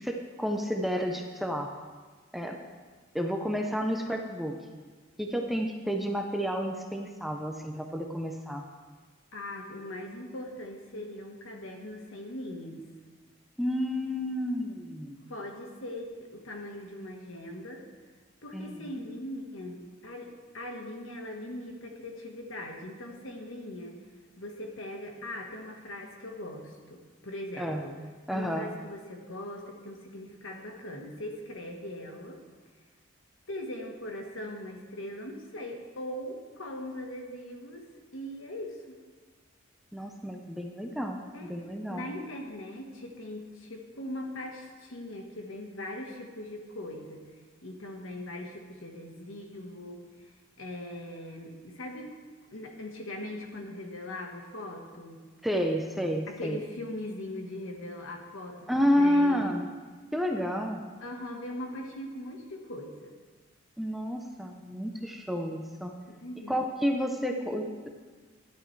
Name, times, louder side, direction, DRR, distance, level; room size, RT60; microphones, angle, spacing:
voice 1, 0.0-1.7 2.3-2.6 3.1-4.6 5.2-8.7 13.6-15.3 18.5-19.1 27.6-27.8 28.3-28.7 39.9-42.1 55.4-56.6 58.7-59.7 60.1-60.8 63.8-65.9 66.5-67.9, equal, ahead, 3 dB, 0.6 m, -30 dB
voice 2, 9.3-12.9 15.3-17.8 18.4-20.3 20.5-24.0 24.4-28.0 28.3-32.4 33.5-39.0 41.3-41.6 41.9-47.3 47.6-50.0 50.6-52.2 52.5-55.2 56.3-59.6 61.0-63.1 66.1-66.7, left 1 dB, 75° left, 2 dB, 1.4 m, -40 dB
12.5 x 11.0 x 3.3 m, 1.4 s
head